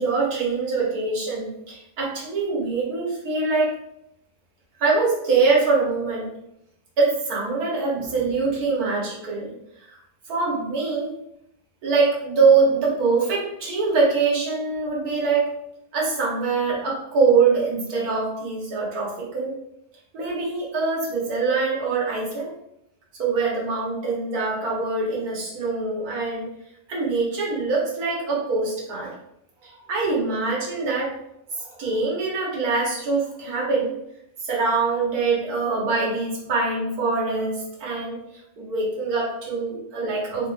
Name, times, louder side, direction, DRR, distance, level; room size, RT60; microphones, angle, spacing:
voice 1, 0.0-3.7 4.8-6.3 7.0-9.5 9.9-10.0 10.3-11.1 11.8-15.5 15.9-19.5 20.1-22.5 23.2-26.5 26.9-29.1 29.6-31.1 31.5-33.9 34.4-38.2 38.6-40.5, right 4 dB, 70° right, -4 dB, 1.7 m, -23 dB
4.0 x 3.5 x 2.5 m, 0.79 s
omnidirectional pair, 1.6 m